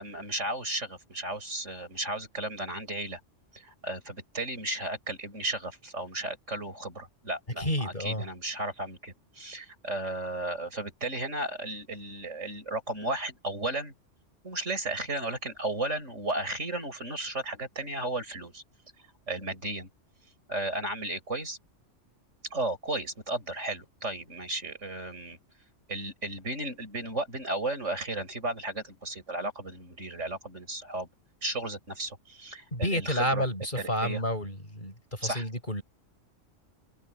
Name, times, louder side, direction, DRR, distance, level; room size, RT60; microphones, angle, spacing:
voice 1, 0.0-3.2 3.5-13.9 14.4-18.6 19.3-19.9 20.5-21.6 22.5-25.4 25.9-31.1 31.4-33.4 33.8-34.2 35.2-35.4, right 2 dB, 70° right, 6.8 m, -34 dB
voice 2, 7.6-8.2 32.7-35.8, equal, 40° left, 7.0 m, -30 dB
open air
omnidirectional pair, 1.3 m